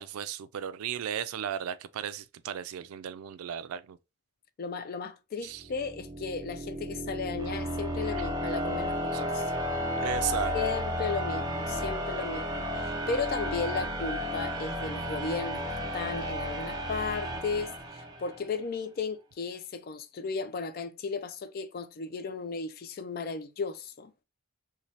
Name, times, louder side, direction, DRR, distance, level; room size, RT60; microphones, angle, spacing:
voice 1, 0.0-4.0 5.4-5.6 8.2-8.3 9.1-9.3 10.0-10.5, right 9 dB, 85° right, 0.3 m, -35 dB
voice 2, 4.6-9.5 10.5-15.6 15.9-24.1, left 4 dB, 45° left, 0.3 m, -35 dB
sound 1, 5.6-18.5, equal, 20° right, 0.5 m, -33 dB
3.1 x 2.3 x 2.6 m
head